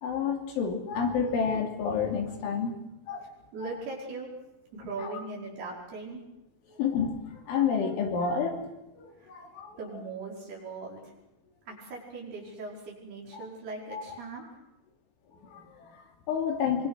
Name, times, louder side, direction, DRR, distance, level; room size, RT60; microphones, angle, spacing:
voice 1, 0.0-2.8 3.1-3.3 5.0-5.1 6.8-8.7 9.0-10.0 13.3-13.5 13.9-14.0 15.4-16.9, left 6 dB, 70° left, 3 dB, 5.1 m, -30 dB
voice 2, 3.5-4.3 4.7-6.2 9.2-9.3 9.8-11.1 11.7-14.4, right 3 dB, 50° right, -2 dB, 6.9 m, -39 dB
25.5 x 24.0 x 6.4 m, 0.91 s
omnidirectional pair, 5.8 m